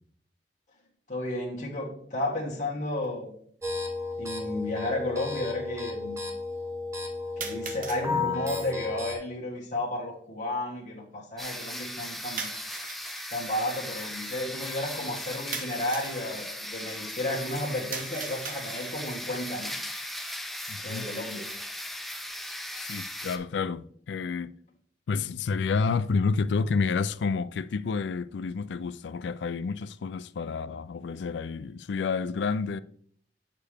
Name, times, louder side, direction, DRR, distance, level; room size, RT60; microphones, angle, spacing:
voice 1, 1.1-3.3 4.2-6.3 7.4-12.5 13.3-19.7 20.8-21.5, left 1 dB, 45° left, 1.7 m, -33 dB
sound 1, 3.0-3.1 4.1-4.2 7.4-8.1 12.4-13.3 15.5-16.2 17.9-19.1, right 5 dB, 50° right, 1.0 m, -39 dB
sound 2, 3.6-9.2, left 3 dB, 15° right, 1.2 m, -33 dB
sound 3, 11.4-23.4, left 1 dB, ahead, 0.7 m, -38 dB
voice 2, 20.7-21.1 22.8-24.5 25.1-32.8, left 4 dB, 85° left, 0.4 m, -29 dB
8.2 x 6.7 x 3.5 m
head